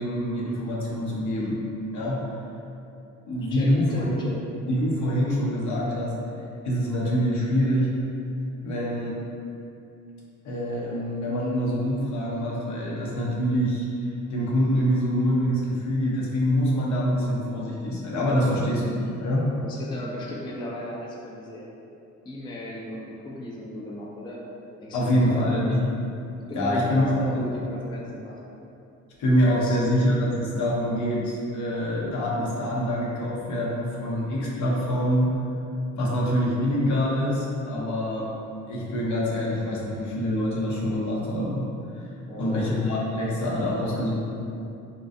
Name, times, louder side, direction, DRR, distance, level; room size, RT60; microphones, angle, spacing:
voice 1, 0.0-1.6 1.9-2.3 3.3-4.1 4.7-6.1 6.6-7.9 8.6-9.2 10.4-13.8 14.3-19.4 24.9-25.8 26.5-27.4 29.2-35.3 35.9-38.3 38.7-41.7 42.4-44.2, equal, 70° left, -5 dB, 0.7 m, -25 dB
voice 2, 3.4-4.4 19.6-21.7 22.2-24.4 24.8-25.4 26.5-28.4 29.5-29.8 42.3-42.7, left 1 dB, 15° left, -4 dB, 0.3 m, -36 dB
2.5 x 2.2 x 2.5 m, 2.7 s
cardioid pair, 90°, 30 cm